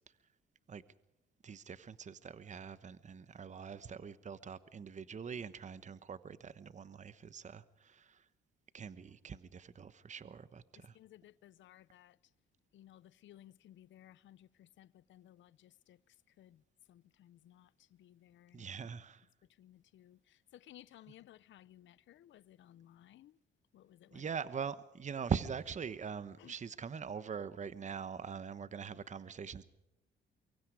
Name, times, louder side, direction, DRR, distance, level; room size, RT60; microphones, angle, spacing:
voice 1, 1.4-8.2 8.7-11.0 18.5-19.2 24.1-29.6, right 6 dB, 35° right, 1.1 m, -42 dB
voice 2, 10.8-12.2 12.7-16.6 16.9-18.7 19.6-23.4 23.7-24.3 26.4-26.6, left 12 dB, 70° left, 0.8 m, -59 dB
24.0 x 23.5 x 4.9 m
cardioid pair, 90°, 20 cm